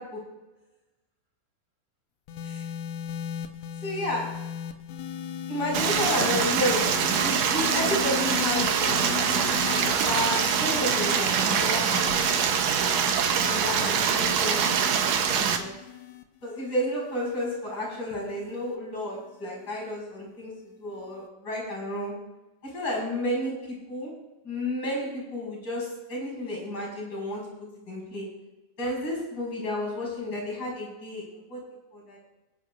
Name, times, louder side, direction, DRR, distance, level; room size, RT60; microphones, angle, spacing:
sound 1, 2.3-18.8 19.7-20.0, left 10 dB, 80° left, 1.7 m, -38 dB
voice 1, 3.8-4.2 5.5-6.9 7.2-12.2 13.4-14.7 15.1-15.8 16.4-20.5 20.8-22.1 22.7-24.1 24.4-27.4 27.9-28.2 28.8-31.2 31.5-31.6 31.9-32.2, left 1 dB, 30° left, -2 dB, 5.7 m, -31 dB
Stream, 5.7-15.6, right 7 dB, 75° right, 1.5 m, -24 dB
25.5 x 9.9 x 2.5 m, 1.1 s
omnidirectional pair, 4.1 m